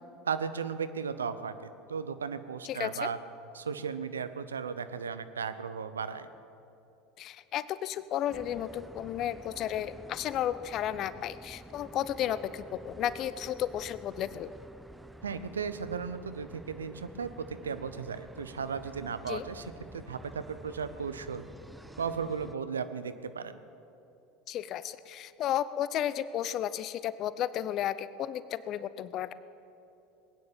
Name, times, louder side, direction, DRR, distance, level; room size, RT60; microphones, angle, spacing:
voice 1, 0.3-1.6 1.9-3.2 3.5-6.3 15.2-19.6 19.9-21.4 22.0-23.6, right 6 dB, 90° right, 12 dB, 0.7 m, -35 dB
voice 2, 2.6-3.1 7.2-14.5 19.3-19.4 24.5-29.3, left 11 dB, 50° left, 16 dB, 0.6 m, -33 dB
sound 1, 8.3-22.6, right 1 dB, 5° right, 0.6 m, -49 dB
20.5 x 9.5 x 7.3 m, 2.8 s
hypercardioid pair, 80°, 0 cm